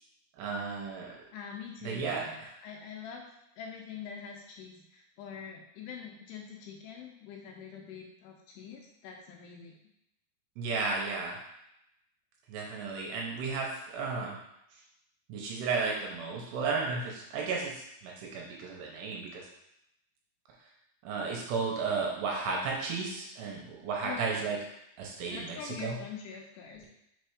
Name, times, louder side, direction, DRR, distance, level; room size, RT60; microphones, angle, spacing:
voice 1, 0.4-1.2 1.8-2.5 10.6-11.4 12.5-14.4 14.7-14.8 15.3-19.5 21.0-24.6 25.0-26.0, right 4 dB, 75° right, -1 dB, 2.8 m, -34 dB
voice 2, 1.3-3.3 3.6-9.7 24.0-24.5 25.3-26.9, left 7 dB, 80° left, 0 dB, 2.6 m, -44 dB
6.5 x 3.4 x 4.8 m, 0.81 s
omnidirectional pair, 5.2 m